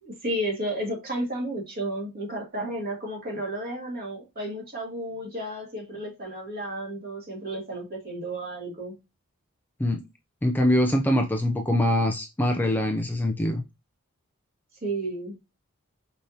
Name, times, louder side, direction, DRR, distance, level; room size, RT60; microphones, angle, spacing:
voice 1, 0.0-9.0 14.8-15.4, right 1 dB, 45° right, 1.7 m, -32 dB
voice 2, 10.4-13.6, left 1 dB, 10° left, 0.3 m, -23 dB
4.9 x 2.8 x 2.7 m
head